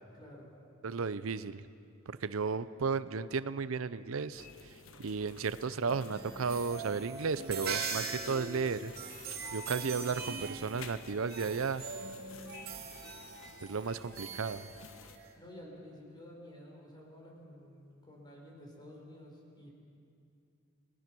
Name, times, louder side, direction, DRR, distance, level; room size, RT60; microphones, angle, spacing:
voice 1, 0.1-0.5 15.3-19.7, left 1 dB, 20° left, -1 dB, 5.0 m, -51 dB
voice 2, 0.8-1.6 2.1-8.9 9.5-11.8 13.6-14.7, right 5 dB, 80° right, 15 dB, 0.6 m, -34 dB
sound 1, 4.3-15.2, left 4 dB, 80° left, 1.3 m, -53 dB
sound 2, 5.8-15.3, right 5 dB, 50° right, 2.4 m, -42 dB
28.5 x 19.5 x 6.2 m, 2.6 s
head